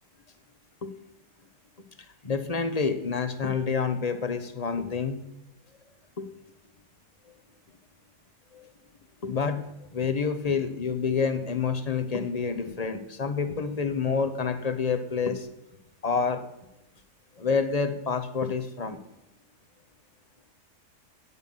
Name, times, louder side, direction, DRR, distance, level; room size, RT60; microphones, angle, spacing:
voice 1, 2.2-5.2 6.2-6.3 8.5-8.7 9.2-9.6 9.9-15.5 16.0-16.4 17.4-19.0, left 5 dB, 25° left, 10 dB, 1.1 m, -28 dB
14.0 x 9.5 x 5.6 m, 0.89 s
omnidirectional pair, 1.8 m